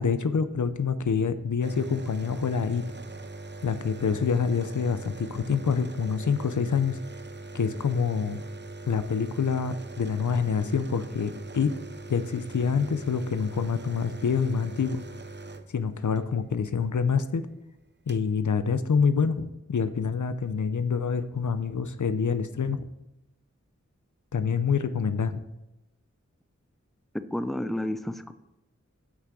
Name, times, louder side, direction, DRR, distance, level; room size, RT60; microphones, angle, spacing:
voice 1, 0.0-2.8 3.6-7.0 7.5-8.4 8.9-11.8 12.1-15.0 15.7-17.5 18.1-22.9 24.3-25.4, left 6 dB, 90° left, 12 dB, 0.6 m, -26 dB
sound 1, 1.6-16.2 17.5-17.6 17.8-18.3, right 3 dB, 40° right, 0.6 m, -41 dB
voice 2, 27.1-28.3, left 1 dB, ahead, 10 dB, 0.6 m, -31 dB
8.1 x 5.9 x 6.8 m, 0.91 s
wide cardioid pair, 50°, 29 cm